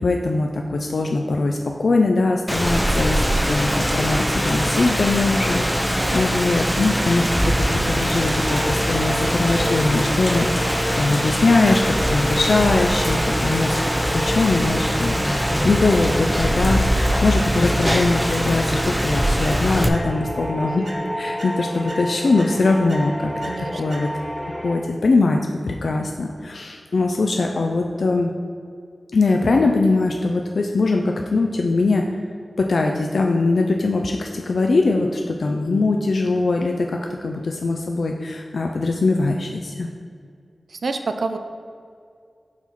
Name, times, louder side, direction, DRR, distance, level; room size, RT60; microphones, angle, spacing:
voice 1, 0.0-13.8 14.1-20.9 21.2-23.3 23.7-24.1 24.5-28.3 29.1-32.1 32.6-39.9, left 3 dB, 80° left, 2 dB, 0.3 m, -21 dB
Rain, 2.5-19.9, equal, ahead, 0.5 m, -22 dB
voice 2, 5.9-6.2 17.4-17.6 23.4-23.8 40.7-41.4, right 3 dB, 90° right, 7 dB, 0.3 m, -28 dB
sound 1, 8.0-24.8, equal, 20° left, 1.0 m, -31 dB
sound 2, 16.9-18.4 18.9-20.5 20.8-24.4, right 1 dB, 70° right, 0.9 m, -42 dB
5.8 x 4.3 x 4.4 m, 2.3 s
wide cardioid pair, 70°, 0 cm